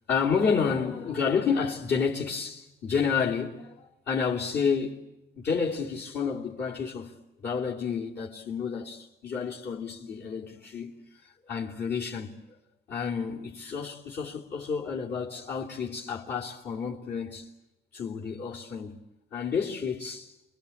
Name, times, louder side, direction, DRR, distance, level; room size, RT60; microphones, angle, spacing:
voice 1, 0.1-5.0 5.3-7.1 7.4-10.9 11.5-12.3 12.9-17.5 17.9-19.0 19.3-20.3, left 6 dB, 60° left, 3.2 m, -30 dB
28.5 x 22.0 x 8.7 m
cardioid pair, 90°, 20 cm